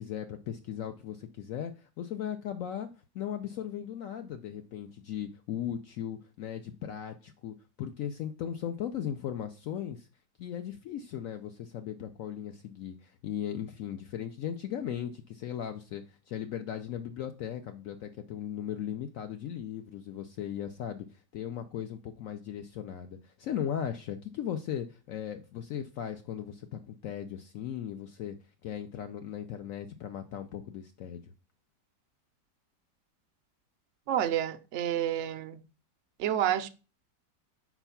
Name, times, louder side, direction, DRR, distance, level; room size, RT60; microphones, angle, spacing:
voice 1, 0.0-2.9 3.1-10.1 10.4-21.1 21.3-28.3 28.6-31.2, left 9 dB, 70° left, 0.8 m, -37 dB
voice 2, 34.1-35.6 36.2-36.7, right 11 dB, 75° right, 0.6 m, -29 dB
4.5 x 4.4 x 5.6 m
omnidirectional pair, 1.8 m